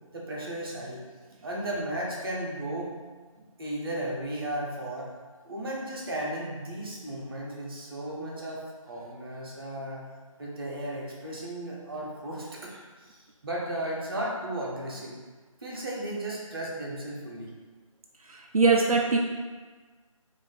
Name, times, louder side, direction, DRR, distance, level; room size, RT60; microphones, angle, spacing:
voice 1, 0.1-1.0 1.4-2.9 3.3-5.1 5.4-10.0 10.4-15.1 15.6-17.5, right 1 dB, 40° right, -4 dB, 0.8 m, -35 dB
voice 2, 18.2-19.2, right 4 dB, 90° right, 0 dB, 0.4 m, -22 dB
2.6 x 2.5 x 3.9 m, 1.4 s
figure-of-eight pair, 155°, 18 cm